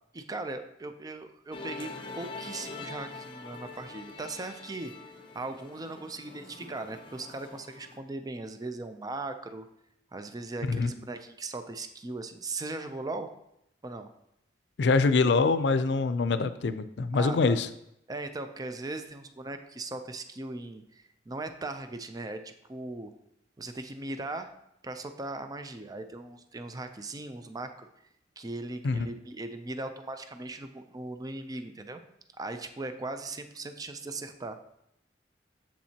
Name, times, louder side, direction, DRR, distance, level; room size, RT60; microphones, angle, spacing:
voice 1, 0.1-9.6 10.1-13.3 13.8-14.1 17.1-17.6 18.1-23.1 23.6-24.5 24.8-27.9 28.4-32.0 32.4-34.6, right 2 dB, 20° right, 8 dB, 0.4 m, -39 dB
Musical instrument, 1.5-8.0, left 4 dB, 30° left, 0.7 m, -44 dB
voice 2, 14.8-17.7 28.8-29.1, left 4 dB, 75° left, 12 dB, 0.5 m, -24 dB
7.4 x 7.3 x 2.8 m, 0.79 s
head